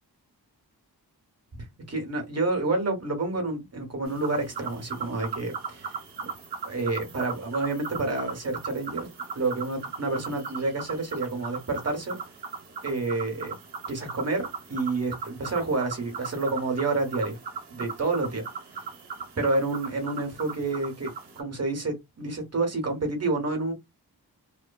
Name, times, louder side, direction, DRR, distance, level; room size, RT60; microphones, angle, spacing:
voice 1, 1.9-6.0 6.6-9.1 9.3-12.2 12.8-13.5 13.9-17.4 17.7-18.4 19.4-21.1 21.4-23.7, right 3 dB, 40° right, 1.2 m, -29 dB
sound 1, 4.1-21.4, right 5 dB, 85° right, 1.0 m, -38 dB
3.1 x 2.2 x 2.2 m
wide cardioid pair, 95°, 39 cm